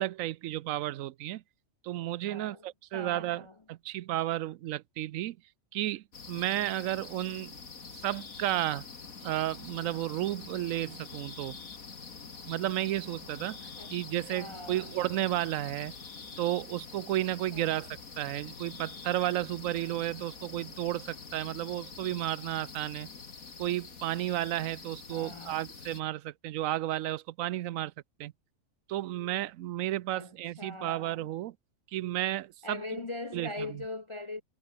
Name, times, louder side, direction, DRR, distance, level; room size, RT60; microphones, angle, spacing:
voice 1, 0.0-1.4 1.8-3.4 3.7-5.4 5.7-7.5 7.9-8.9 9.2-11.6 12.5-13.6 13.9-15.9 16.4-17.9 18.2-23.1 23.6-27.9 28.2-28.3 28.9-31.5 31.9-32.8 33.3-33.7, right 14 dB, 75° right, 1.0 m, -32 dB
voice 2, 2.3-3.6 13.8-13.9 14.3-14.9 17.5-17.8 25.1-25.6 30.1-31.3 32.6-34.4, left 2 dB, 30° left, 0.6 m, -41 dB
sound 1, 6.1-26.0, left 5 dB, 85° left, 2.7 m, -46 dB
omnidirectional pair, 1.4 m